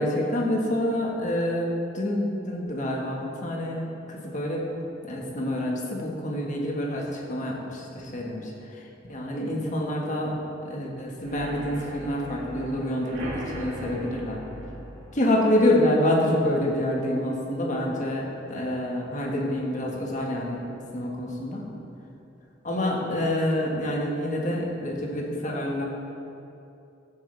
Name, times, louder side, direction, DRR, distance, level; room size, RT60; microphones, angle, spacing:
voice 1, 0.0-3.8 4.1-4.6 5.0-14.4 15.1-18.2 18.5-20.6 20.9-21.6 22.6-25.8, left 1 dB, 40° left, -2 dB, 1.6 m, -27 dB
sound 1, 11.2-18.8 19.2-19.6 19.9-20.0 20.3-20.4, equal, 60° right, 2.1 m, -41 dB
15.0 x 8.0 x 3.4 m, 2.7 s
head